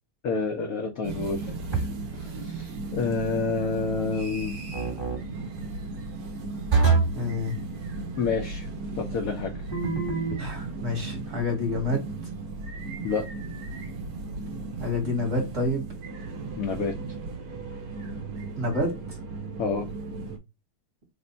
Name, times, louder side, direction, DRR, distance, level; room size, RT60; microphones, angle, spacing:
voice 1, 0.2-1.9 2.1-4.6 8.2-8.7 9.0-9.5 13.0-13.3 16.6-17.0 19.6-19.9, left 4 dB, 80° left, 0.7 m, -29 dB
sound 1, 1.0-20.4, right 3 dB, 70° right, 0.9 m, -36 dB
sound 2, 1.7-2.2 4.7-5.2 6.7-7.2 9.7-10.4, right 4 dB, 20° right, 0.8 m, -24 dB
voice 2, 7.1-7.6 10.3-12.1 14.8-15.8 18.6-19.2, left 2 dB, 45° right, 1.2 m, -28 dB
3.4 x 2.1 x 3.9 m
omnidirectional pair, 2.3 m